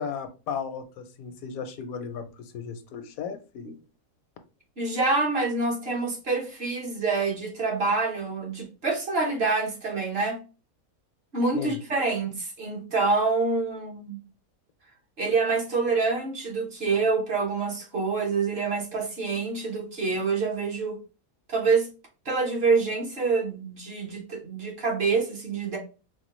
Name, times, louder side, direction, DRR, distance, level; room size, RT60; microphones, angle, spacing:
voice 1, 0.0-3.7 11.5-11.8, left 6 dB, 80° left, 1.0 m, -35 dB
voice 2, 4.8-10.4 11.3-14.2 15.2-21.0 21.5-21.9 22.2-25.8, right 4 dB, 50° right, 1.1 m, -26 dB
4.4 x 2.2 x 2.9 m
omnidirectional pair, 1.5 m